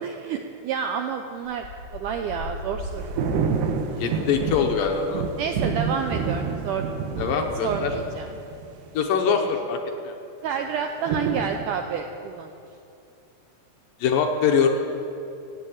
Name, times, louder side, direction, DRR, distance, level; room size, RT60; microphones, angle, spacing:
voice 1, 0.0-1.7 1.9-3.2 5.4-6.8 7.1-7.2 7.6-8.3 9.3-9.5 10.4-12.5, right 7 dB, 90° right, 5 dB, 1.8 m, -29 dB
sound 1, 1.4-5.8 6.1-6.5, left 2 dB, 15° right, 3.9 m, -38 dB
sound 2, 2.9-8.9 11.0-11.6, right 5 dB, 70° right, 2.4 m, -28 dB
voice 2, 4.0-5.3 7.2-7.9 8.9-9.8 10.0-10.1 14.0-14.7, left 6 dB, 75° left, 3 dB, 2.4 m, -23 dB
16.5 x 8.3 x 8.7 m, 2.7 s
omnidirectional pair, 4.4 m